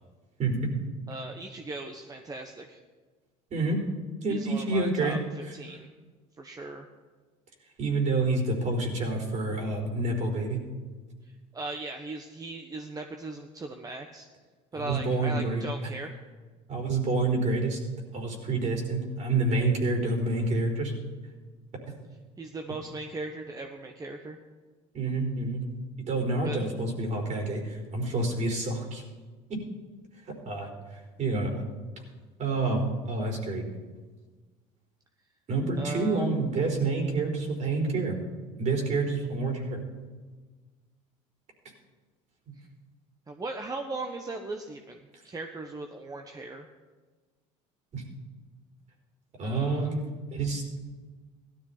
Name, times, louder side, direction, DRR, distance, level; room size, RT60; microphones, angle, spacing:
voice 1, 0.4-0.7 3.5-3.8 4.2-5.2 7.8-10.6 14.7-15.6 16.7-17.8 18.1-20.9 24.9-25.6 26.1-29.0 29.5-29.6 30.4-31.6 32.4-33.7 35.5-38.2 38.6-39.8 47.9-48.0 49.4-50.6, right 3 dB, 45° right, 1 dB, 4.3 m, -28 dB
voice 2, 1.1-2.8 4.3-5.9 6.4-6.9 11.5-14.3 14.7-16.2 22.4-24.4 26.4-26.6 35.8-36.3 43.3-45.0 45.2-46.7 49.4-49.9, right 2 dB, 20° right, 4 dB, 1.2 m, -38 dB
17.0 x 12.5 x 4.2 m, 1.4 s
supercardioid pair, 85°, 16 cm